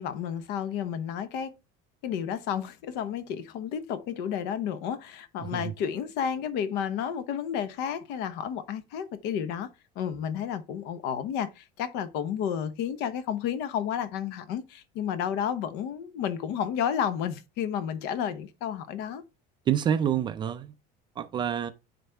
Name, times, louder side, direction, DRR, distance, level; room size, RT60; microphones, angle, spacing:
voice 1, 0.0-1.5 2.0-9.7 10.0-19.2, left 8 dB, 55° left, 0.9 m, -31 dB
voice 2, 5.4-5.7 19.7-20.7 21.2-21.7, right 9 dB, 20° right, 0.4 m, -27 dB
9.2 x 4.1 x 3.4 m
cardioid pair, 175°, 21 cm